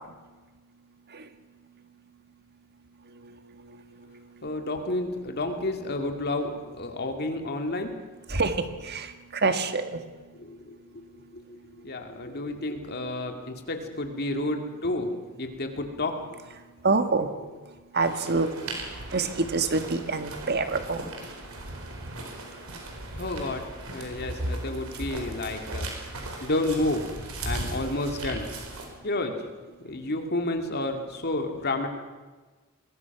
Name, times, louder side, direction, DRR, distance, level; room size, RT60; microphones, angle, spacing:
voice 1, 4.4-7.9 10.3-11.1 11.3-11.4 11.8-15.1 15.4-16.1 23.2-25.9 26.4-27.1 27.4-28.5 29.0-29.4 29.8-31.9, left 2 dB, 50° left, 5 dB, 2.4 m, -30 dB
voice 2, 8.3-10.0 16.8-17.3 17.9-18.5 19.1-21.1, right 3 dB, 50° right, 8 dB, 1.8 m, -26 dB
sound 1, 18.0-28.9, right 2 dB, 80° right, 4.6 m, -38 dB
24.0 x 20.5 x 6.0 m, 1.3 s
head